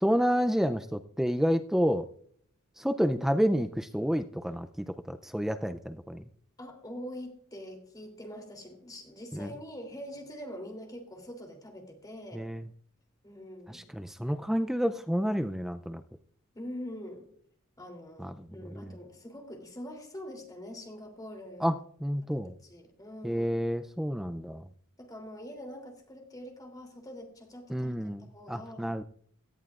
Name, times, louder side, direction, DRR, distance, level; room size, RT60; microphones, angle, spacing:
voice 1, 0.0-2.1 2.8-6.2 9.3-9.5 12.3-12.6 13.7-16.0 18.2-18.3 18.7-18.9 21.6-21.7 22.0-22.5 23.2-24.6 27.7-29.0, equal, ahead, 8 dB, 0.4 m, -29 dB
voice 2, 6.6-12.5 13.2-13.8 16.5-17.3 17.8-21.8 22.4-23.5 25.0-27.9 28.3-28.9, equal, 15° left, 3 dB, 3.0 m, -44 dB
18.0 x 13.5 x 2.4 m, 0.63 s
head